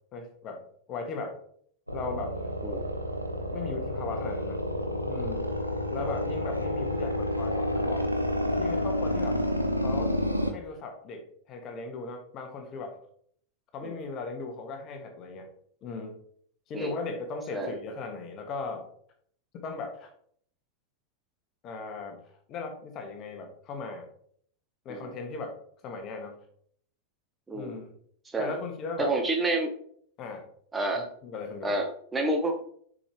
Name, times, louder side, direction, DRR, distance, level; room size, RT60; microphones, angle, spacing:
voice 1, 0.1-1.4 1.9-2.4 3.5-4.6 5.0-5.5 5.9-8.1 8.6-9.4 9.8-10.2 10.5-13.0 13.7-15.5 15.8-16.2 16.7-18.9 19.6-20.1 21.6-22.2 22.5-24.1 24.8-25.6 25.8-26.4 27.5-27.9 28.4-29.1 30.2-30.4 30.9-31.7, left 4 dB, 35° left, 4 dB, 1.5 m, -37 dB
sound 1, 1.9-10.5, equal, 90° right, 0.7 m, -29 dB
voice 2, 27.5-27.8 28.2-28.6 29.0-29.7 30.7-31.1 31.6-32.5, right 2 dB, 15° right, 3 dB, 0.9 m, -29 dB
6.9 x 5.3 x 3.1 m, 0.62 s
figure-of-eight pair, 90°, 0 cm